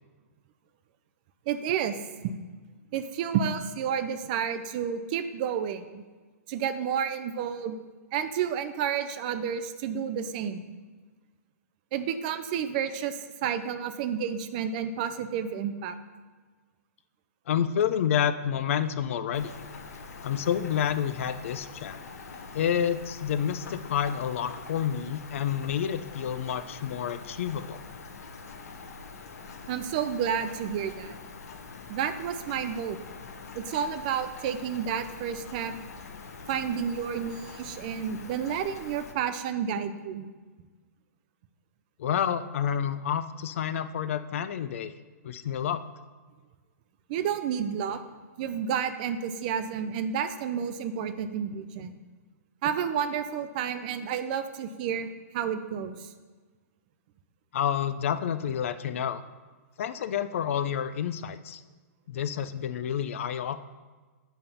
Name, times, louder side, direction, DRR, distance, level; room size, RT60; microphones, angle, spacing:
voice 1, 1.5-2.0 2.2-2.3 2.9-6.0 6.5-7.8 8.1-10.6 11.9-16.0 29.7-31.2 31.9-33.0 33.5-35.7 36.5-40.3 47.1-48.0 48.4-52.0 52.6-56.1, right 8 dB, 30° right, 10 dB, 0.4 m, -30 dB
voice 2, 17.5-19.5 20.2-22.0 22.5-27.8 42.0-44.9 45.2-45.8 57.5-59.2 59.8-61.6 62.1-63.6, left 9 dB, 50° left, 12 dB, 0.4 m, -29 dB
Rain, 19.3-39.1, left 4 dB, 65° left, 0.9 m, -44 dB
9.0 x 3.5 x 5.5 m, 1.4 s
hypercardioid pair, 160°, 9 cm